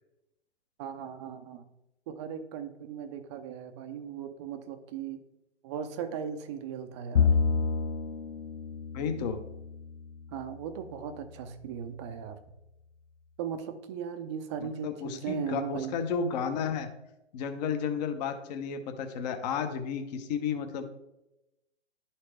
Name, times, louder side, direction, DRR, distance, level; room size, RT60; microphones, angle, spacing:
voice 1, 0.8-1.6 2.1-5.2 5.6-7.3 10.3-12.4 13.4-16.0, right 7 dB, 25° right, 8 dB, 0.5 m, -37 dB
Bowed string instrument, 7.1-10.6, left 5 dB, 75° left, 0.6 m, -29 dB
voice 2, 8.9-9.4 14.6-16.9 17.3-20.8, left 6 dB, 35° left, 7 dB, 0.8 m, -32 dB
11.5 x 4.2 x 3.2 m, 0.91 s
hypercardioid pair, 125°, 36 cm